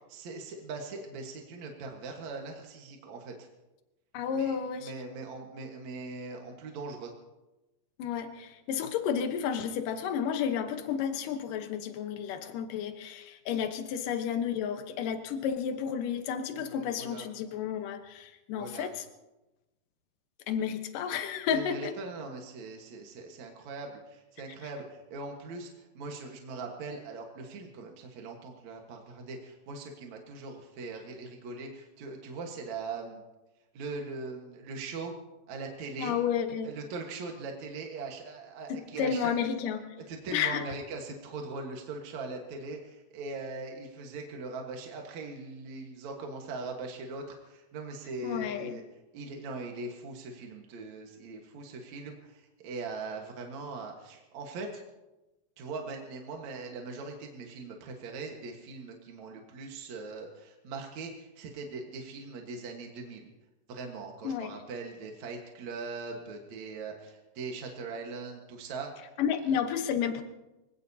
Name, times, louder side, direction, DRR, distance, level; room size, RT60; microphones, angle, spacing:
voice 1, 0.1-3.5 4.3-7.1 16.5-17.3 18.6-18.9 21.5-33.2 33.7-35.2 35.5-36.2 36.6-39.3 40.1-48.8 49.1-54.8 55.6-63.3 63.7-69.1, right 3 dB, 60° right, 2 dB, 2.6 m, -41 dB
voice 2, 4.1-4.9 8.0-19.0 20.5-21.9 36.0-36.7 38.7-40.0 40.3-40.6 48.2-48.8 64.2-64.5 69.2-70.2, left 8 dB, 75° left, 7 dB, 2.7 m, -31 dB
24.5 x 18.0 x 2.8 m, 1.0 s
omnidirectional pair, 3.9 m